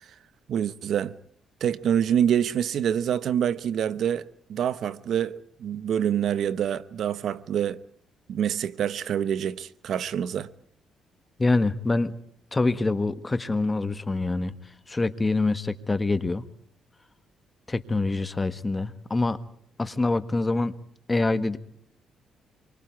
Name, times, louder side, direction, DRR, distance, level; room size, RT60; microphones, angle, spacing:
voice 1, 0.5-1.2 1.6-7.8 8.3-10.5, right 9 dB, 70° right, 0.9 m, -26 dB
voice 2, 11.4-12.1 12.5-14.5 14.9-16.4 17.7-19.4 19.8-20.7 21.1-21.6, left 3 dB, 20° left, 1.6 m, -25 dB
26.5 x 23.5 x 4.7 m
cardioid pair, 90°, 0 cm